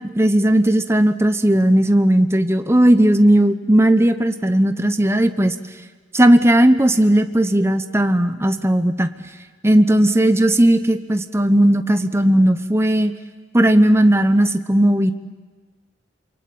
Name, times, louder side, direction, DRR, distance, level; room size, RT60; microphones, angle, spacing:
voice 1, 0.0-5.5 6.1-9.1 9.6-13.1 13.5-15.1, right 1 dB, 15° right, 8 dB, 1.1 m, -16 dB
27.5 x 24.0 x 8.7 m, 1.4 s
head